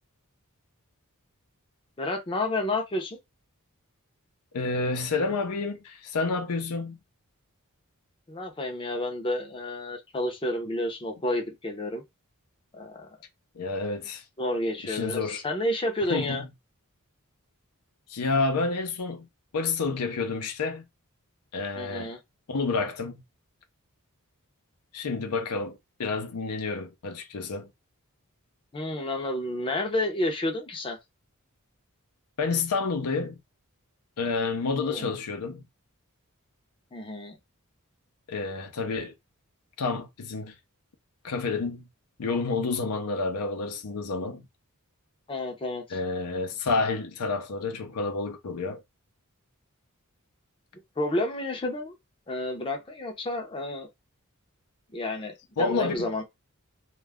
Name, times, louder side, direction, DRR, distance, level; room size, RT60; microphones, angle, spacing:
voice 1, 2.0-3.2 8.3-12.0 12.7-13.1 14.4-16.4 21.8-22.2 28.7-31.0 34.8-35.1 36.9-37.4 45.3-46.0 51.0-51.9 52.3-53.9 54.9-56.2, left 1 dB, 25° left, 0.5 m, -30 dB
voice 2, 4.5-7.0 13.6-14.2 14.8-15.4 16.1-16.5 18.1-19.3 19.5-20.8 21.5-22.2 22.5-23.2 24.9-27.7 32.4-33.4 34.2-35.6 38.3-39.1 39.8-40.5 41.2-41.8 42.2-44.4 45.9-48.8 55.6-56.1, left 4 dB, 90° left, 0.6 m, -29 dB
2.3 x 2.0 x 3.4 m
head